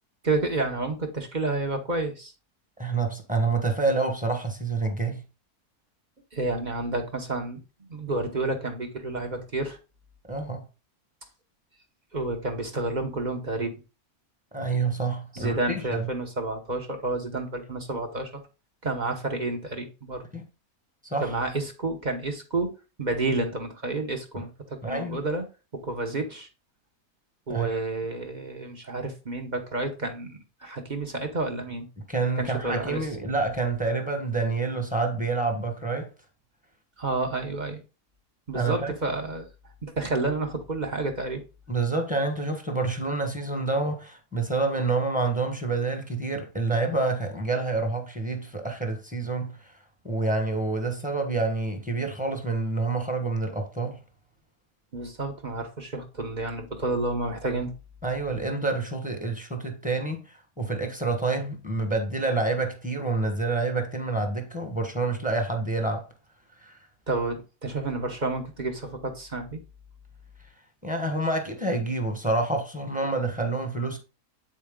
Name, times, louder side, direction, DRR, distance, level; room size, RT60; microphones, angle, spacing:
voice 1, 0.2-2.3 6.3-9.8 12.1-13.7 15.3-18.4 18.8-20.2 21.2-22.7 23.0-25.4 25.8-26.5 27.5-31.9 32.4-33.1 37.0-37.8 38.5-39.5 39.8-41.4 54.9-57.7 67.1-69.6, right 2 dB, 35° right, 1.0 m, -30 dB
voice 2, 2.8-5.2 10.3-10.7 14.5-16.0 20.3-20.5 21.1-21.3 24.8-25.2 27.5-27.8 32.1-36.1 38.5-38.9 41.7-49.6 50.0-54.0 58.0-66.0 66.6-66.7 70.8-74.0, right 3 dB, 5° right, 1.1 m, -28 dB
8.6 x 4.4 x 3.7 m
omnidirectional pair, 1.6 m